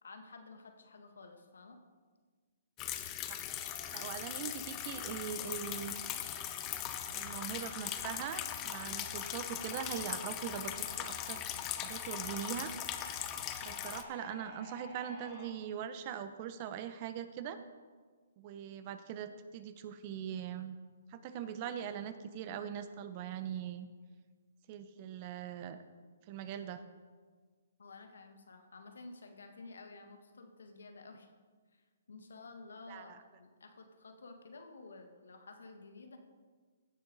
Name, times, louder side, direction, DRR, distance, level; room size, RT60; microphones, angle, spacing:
voice 1, 0.0-1.8 13.6-13.9 27.8-31.3 31.7-36.2, left 3 dB, 80° left, 6 dB, 1.4 m, -52 dB
sound 1, 2.8-14.0, left 11 dB, 25° left, 0.7 m, -40 dB
sound 2, 3.4-15.5, equal, 20° right, 3.8 m, -53 dB
voice 2, 3.9-5.9 7.1-11.4 11.8-12.7 13.6-17.6 18.4-20.8 21.1-23.9 24.7-25.8 26.3-26.8 32.9-33.2, right 9 dB, 35° right, 11 dB, 0.7 m, -41 dB
16.0 x 6.9 x 4.0 m, 1.5 s
hypercardioid pair, 140°, 0 cm